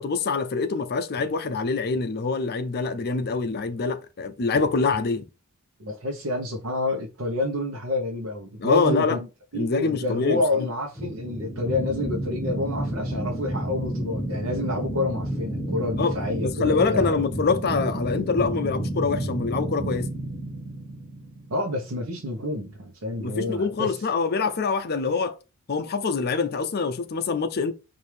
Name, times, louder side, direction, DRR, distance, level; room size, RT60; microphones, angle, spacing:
voice 1, 0.0-5.2 8.6-9.2 9.5-10.4 16.0-16.1 16.4-20.1 23.2-25.4 25.7-27.7, left 4 dB, 45° left, 0.5 m, -25 dB
voice 2, 5.8-9.3 9.5-17.1 21.5-24.1, left 2 dB, 70° right, 0.9 m, -29 dB
sound 1, 11.0-21.9, right 1 dB, 10° left, 1.1 m, -31 dB
4.6 x 2.6 x 3.3 m
head